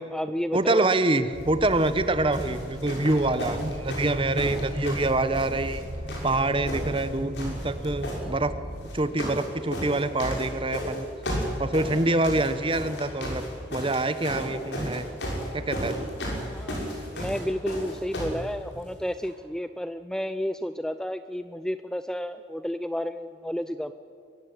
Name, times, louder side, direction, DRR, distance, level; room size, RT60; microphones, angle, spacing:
voice 1, 0.0-0.9 16.4-16.8 17.1-23.9, equal, 5° left, 11 dB, 0.4 m, -31 dB
voice 2, 0.5-5.8 6.2-8.5 8.9-11.1 11.6-13.4 13.7-15.1 15.5-16.1, right 2 dB, 30° right, 12 dB, 1.1 m, -25 dB
sound 1, 1.3-8.8, equal, 50° right, 5.8 m, -37 dB
sound 2, 1.7-1.9 2.3-5.8 6.1-7.1 7.3-8.2 8.8-9.5 9.7-18.4 19.2-19.3, equal, 70° left, 6.4 m, -33 dB
23.0 x 16.0 x 9.5 m, 2.5 s
head